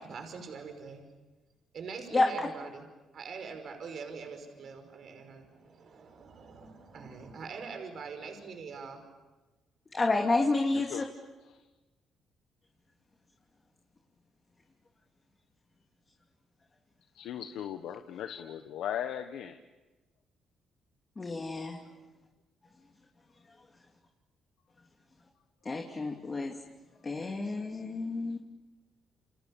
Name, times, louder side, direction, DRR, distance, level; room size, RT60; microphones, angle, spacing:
voice 1, 0.0-1.0 1.7-2.9 3.1-9.0, right 5 dB, 60° right, 5 dB, 5.3 m, -43 dB
voice 2, 9.9-11.0 21.2-21.8 25.6-26.5 27.0-28.4, left 3 dB, 30° left, 2 dB, 2.9 m, -29 dB
voice 3, 10.7-11.1 17.2-19.6, left 10 dB, 85° left, 7 dB, 1.3 m, -37 dB
30.0 x 27.5 x 7.1 m, 1.2 s
cardioid pair, 90°, 0 cm